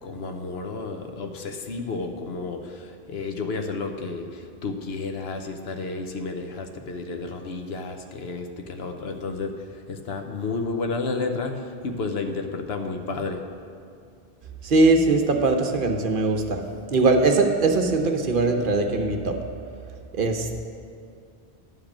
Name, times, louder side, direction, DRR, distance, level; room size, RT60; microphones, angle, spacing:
voice 1, 0.0-9.5 9.9-13.4, left 3 dB, 75° left, 5 dB, 1.0 m, -31 dB
voice 2, 14.6-16.6 16.9-19.3 20.1-20.6, right 3 dB, 60° right, 4 dB, 0.9 m, -21 dB
11.0 x 5.0 x 7.3 m, 2.3 s
omnidirectional pair, 1.1 m